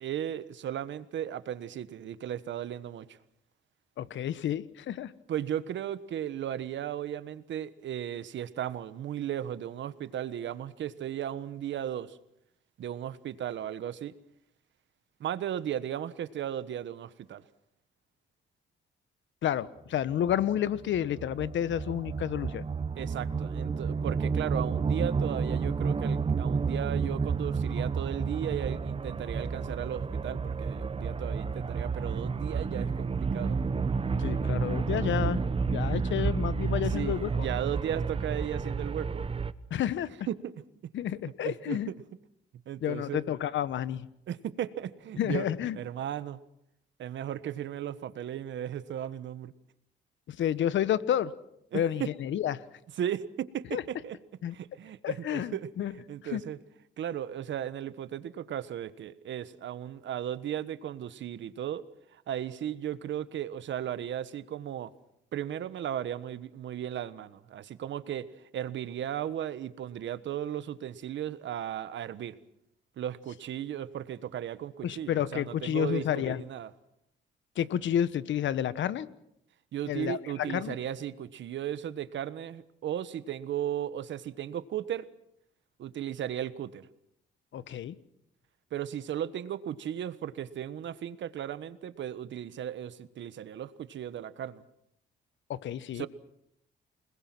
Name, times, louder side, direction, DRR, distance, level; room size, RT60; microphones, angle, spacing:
voice 1, 0.0-3.2 5.3-12.2 12.8-14.1 15.2-17.4 23.0-33.6 36.9-39.2 40.3-40.5 41.4-41.8 42.7-43.2 44.3-45.5 45.7-46.4 47.0-49.5 51.7-52.1 53.0-54.2 54.5-55.6 56.1-56.6 57.0-61.8 62.3-64.9 65.3-68.2 68.5-72.3 73.0-76.7 79.7-85.1 85.8-86.9 88.7-94.6 95.9-96.1, right 10 dB, 70° right, 14 dB, 1.3 m, -36 dB
voice 2, 4.0-5.1 19.4-22.6 34.2-35.4 35.7-37.3 39.7-40.1 40.9-41.9 42.8-44.1 45.2-45.8 50.3-51.3 51.7-52.6 53.7-53.8 54.4-54.5 55.0-55.9 56.3-56.4 74.8-76.4 77.6-79.1 79.9-80.8 87.5-88.0 95.5-96.1, left 10 dB, 70° left, 15 dB, 1.2 m, -30 dB
sound 1, 20.3-39.5, right 5 dB, 30° right, 1.0 m, -31 dB
29.0 x 20.5 x 6.1 m, 0.78 s
cardioid pair, 90°, 20 cm